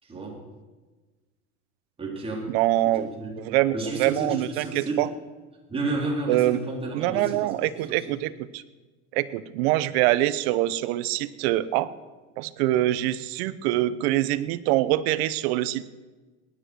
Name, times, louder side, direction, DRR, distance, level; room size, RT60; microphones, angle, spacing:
voice 1, 0.0-0.4 2.0-2.6 2.9-5.1 5.7-7.5 7.9-8.1, right 2 dB, 15° right, -2 dB, 4.0 m, -32 dB
voice 2, 2.5-3.1 3.5-5.1 6.3-6.6 6.9-8.6 9.1-11.9 12.4-15.9, right 15 dB, 75° right, 16 dB, 0.9 m, -24 dB
18.5 x 10.5 x 6.4 m, 1.3 s
supercardioid pair, 125°, 32 cm